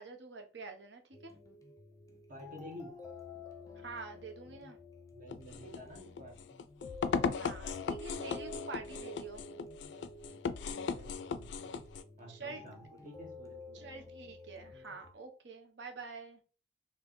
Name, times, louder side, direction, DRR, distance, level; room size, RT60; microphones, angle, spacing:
voice 1, 0.0-1.3 3.8-4.8 7.4-9.4 12.3-12.6 13.7-16.4, right 4 dB, 80° right, 5 dB, 0.8 m, -47 dB
sound 1, 1.1-15.1, left 2 dB, 20° left, 0.5 m, -50 dB
voice 2, 2.3-2.9 5.1-6.4 10.9-11.9 12.2-13.8, left 1 dB, 50° right, 0 dB, 1.2 m, -50 dB
sound 2, 5.3-12.0, left 5 dB, 80° left, 0.3 m, -38 dB
4.3 x 3.0 x 3.0 m, 0.38 s
head